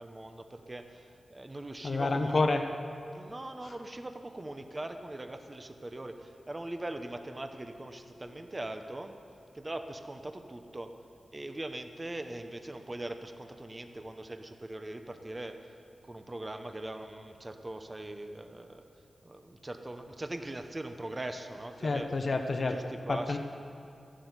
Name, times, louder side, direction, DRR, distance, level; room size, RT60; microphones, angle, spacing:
voice 1, 0.0-2.4 3.1-9.1 9.5-10.9 11.3-15.6 16.1-18.8 19.2-22.1 22.5-23.4, right 1 dB, 25° right, 6 dB, 0.9 m, -41 dB
voice 2, 1.8-2.6 3.6-3.7 21.8-22.8 23.1-23.4, left 3 dB, 50° left, 5 dB, 0.9 m, -28 dB
14.5 x 11.5 x 8.1 m, 2.6 s
wide cardioid pair, 120°, 0 cm